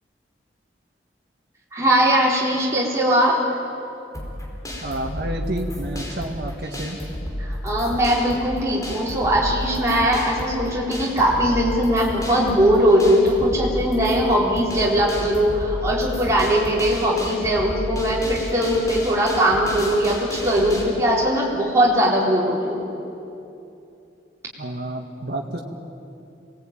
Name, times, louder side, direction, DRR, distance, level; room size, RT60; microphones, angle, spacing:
voice 1, 1.7-3.4 7.4-22.9, equal, 15° right, -5 dB, 4.3 m, -20 dB
sound 1, 4.1-20.8, equal, 20° left, 4.8 m, -32 dB
voice 2, 4.8-7.0 24.6-25.6, right 1 dB, 65° right, 0 dB, 2.0 m, -29 dB
27.5 x 19.5 x 9.1 m, 2.8 s
head